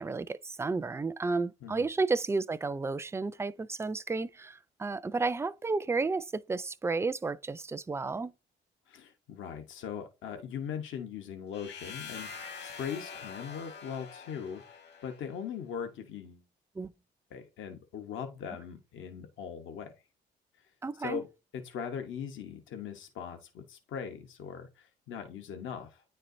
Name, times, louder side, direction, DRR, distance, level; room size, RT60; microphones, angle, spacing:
voice 1, 0.0-8.3 16.8-16.9 20.8-21.2, right 3 dB, 15° right, 0.4 m, -32 dB
voice 2, 8.9-16.4 17.3-19.9 20.6-20.7 21.0-21.3 21.5-26.0, left 7 dB, 80° left, 1.0 m, -40 dB
sound 1, 11.5-15.4, left 5 dB, 60° left, 1.5 m, -45 dB
9.3 x 4.4 x 2.6 m
cardioid pair, 90°, 20 cm